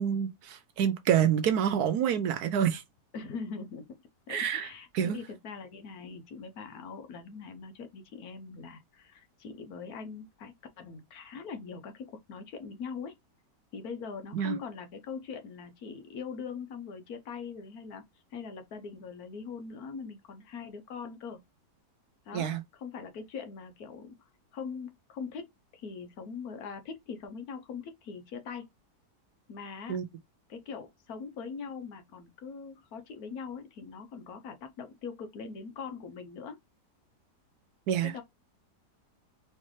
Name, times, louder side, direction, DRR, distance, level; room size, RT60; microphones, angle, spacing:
voice 1, 0.0-2.8 4.3-4.7 4.9-5.2 14.3-14.6 22.3-22.6 29.9-30.0 37.9-38.2, right 9 dB, 70° right, 1.0 m, -27 dB
voice 2, 3.1-3.9 4.3-13.2 13.7-18.0 18.3-21.4 22.3-24.1 24.5-28.7 29.5-30.0 30.5-36.6 38.0-38.2, left 5 dB, 65° left, 1.2 m, -42 dB
4.4 x 3.2 x 3.0 m
omnidirectional pair, 1.8 m